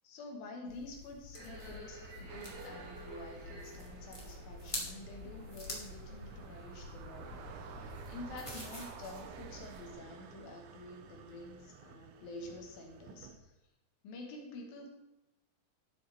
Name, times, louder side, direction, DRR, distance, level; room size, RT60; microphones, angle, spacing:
voice 1, 0.0-13.5 14.0-14.9, left 2 dB, 75° left, 1 dB, 3.2 m, -49 dB
sound 1, 0.7-9.9, left 1 dB, 25° left, 0.6 m, -48 dB
sound 2, 1.3-8.4, right 1 dB, 60° right, 4.6 m, -50 dB
sound 3, 2.3-13.4, right 7 dB, 85° right, 2.7 m, -52 dB
11.5 x 7.9 x 3.4 m, 0.98 s
omnidirectional pair, 4.2 m